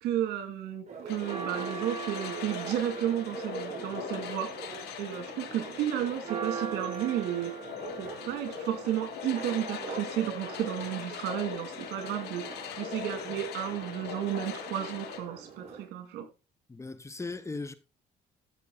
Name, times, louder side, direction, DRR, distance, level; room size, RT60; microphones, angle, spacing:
voice 1, 0.0-4.5 5.0-7.5 8.0-12.5 12.8-16.3, right 11 dB, 80° right, 2.9 m, -33 dB
Church bell, 0.9-15.8, right 5 dB, 40° right, 5.4 m, -41 dB
sound 1, 1.1-15.2, left 9 dB, 80° left, 2.4 m, -41 dB
voice 2, 16.7-17.7, left 3 dB, 15° left, 1.1 m, -38 dB
13.5 x 7.1 x 4.1 m
cardioid pair, 110°, 17 cm